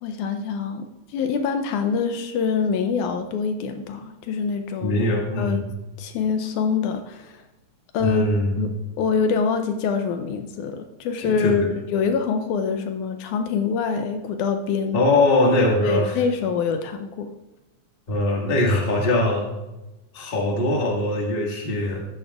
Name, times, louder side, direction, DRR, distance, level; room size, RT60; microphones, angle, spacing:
voice 1, 0.0-5.0 5.4-5.6 6.0-7.4 7.9-8.3 8.6-11.6 11.9-15.0 15.8-17.3, left 6 dB, 80° left, 7 dB, 2.0 m, -25 dB
voice 2, 4.8-5.7 8.0-8.6 11.2-11.7 14.9-16.2 18.1-19.4 20.1-22.0, left 1 dB, 30° left, -1 dB, 1.1 m, -21 dB
14.0 x 10.5 x 2.4 m, 1.0 s
omnidirectional pair, 3.7 m